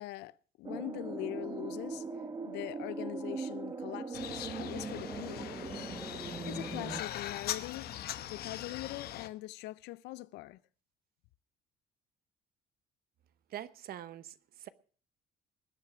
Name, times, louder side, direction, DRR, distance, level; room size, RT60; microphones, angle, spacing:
voice 1, 0.0-2.1 2.5-5.5 6.5-10.6, left 17 dB, 85° left, 0.6 m, -42 dB
sound 1, 0.6-7.0, right 4 dB, 25° right, 1.4 m, -40 dB
sound 2, 4.1-9.3, left 12 dB, 65° left, 1.0 m, -41 dB
voice 2, 13.5-14.7, right 12 dB, 65° right, 0.9 m, -44 dB
20.0 x 7.4 x 6.2 m
cardioid pair, 110°, 17 cm